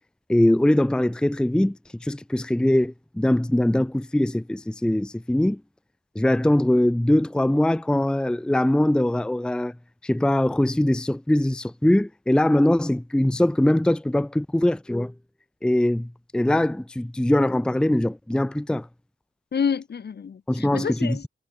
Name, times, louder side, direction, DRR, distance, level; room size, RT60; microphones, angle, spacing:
voice 1, 0.3-5.6 6.2-9.7 10.0-15.1 15.6-18.9 20.5-21.2, left 1 dB, 5° left, 0.6 m, -22 dB
voice 2, 19.5-21.3, left 6 dB, 50° left, 1.0 m, -28 dB
cardioid pair, 55°, 21 cm